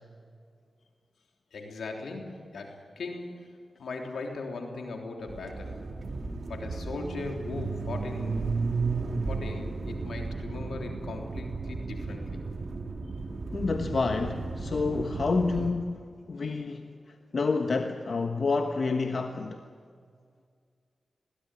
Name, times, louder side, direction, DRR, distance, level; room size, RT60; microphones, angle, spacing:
voice 1, 1.5-5.9 6.5-8.7 9.3-12.4, left 3 dB, 90° left, 2 dB, 3.5 m, -39 dB
sound 1, 5.3-15.7, right 4 dB, 60° right, 2.3 m, -34 dB
voice 2, 13.5-16.9 17.3-19.6, left 4 dB, 65° left, 5 dB, 1.3 m, -29 dB
21.5 x 16.5 x 9.9 m, 2.1 s
cardioid pair, 55°, 0 cm